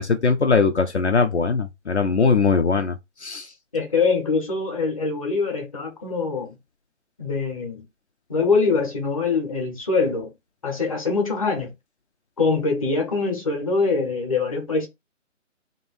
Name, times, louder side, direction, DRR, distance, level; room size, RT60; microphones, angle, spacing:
voice 1, 0.0-3.0 3.2-3.5, left 4 dB, 60° left, 0.7 m, -20 dB
voice 2, 3.7-6.5 7.2-7.8 8.3-10.3 10.6-11.7 12.4-14.9, left 4 dB, 25° left, 0.9 m, -23 dB
3.0 x 2.7 x 4.3 m
figure-of-eight pair, 165°, 39 cm